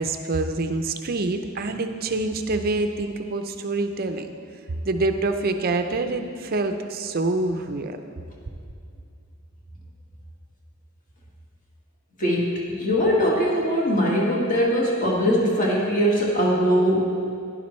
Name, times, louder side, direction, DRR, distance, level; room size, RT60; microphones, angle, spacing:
voice 1, 0.0-4.3 4.8-8.0, right 2 dB, 45° right, 7 dB, 0.5 m, -26 dB
voice 2, 12.2-17.2, equal, 35° left, -4 dB, 1.8 m, -21 dB
11.5 x 11.0 x 3.2 m, 2.5 s
head